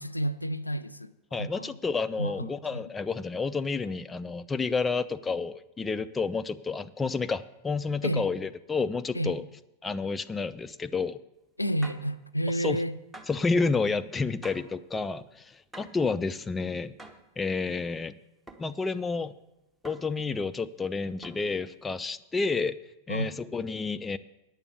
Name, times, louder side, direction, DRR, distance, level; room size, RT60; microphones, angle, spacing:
voice 1, 0.0-1.1 1.4-1.8 2.2-2.9 8.0-8.3 9.1-9.4 11.6-13.0 23.1-23.4, equal, 85° left, 0.4 m, -31 dB
voice 2, 1.3-9.4 9.8-11.2 12.6-12.8 13.3-16.9 17.4-18.1 18.6-19.3 19.8-22.8 23.1-24.2, left 4 dB, 15° left, 0.4 m, -30 dB
sound 1, 11.8-12.1 13.1-13.5 14.4-14.8 15.7-16.1 17.0-17.3 18.5-18.7 19.8-20.2 21.2-21.6, right 2 dB, 10° right, 1.0 m, -47 dB
9.6 x 6.9 x 8.2 m
figure-of-eight pair, 90°, 0 cm